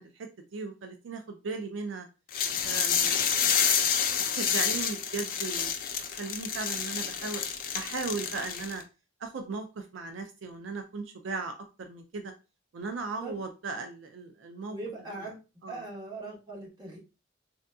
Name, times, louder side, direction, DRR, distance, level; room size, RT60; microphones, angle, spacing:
voice 1, 0.0-2.1 2.6-3.3 4.3-5.8 6.1-7.4 7.7-8.8 9.2-12.3 12.7-14.8 15.2-15.3 15.6-15.8, right 4 dB, 75° right, 6 dB, 0.4 m, -37 dB
sound 1, 2.3-8.8, left 7 dB, 45° left, 0.5 m, -28 dB
voice 2, 14.7-15.4 15.7-17.0, right 2 dB, 20° right, -3 dB, 1.1 m, -40 dB
3.6 x 2.6 x 2.2 m, 0.31 s
head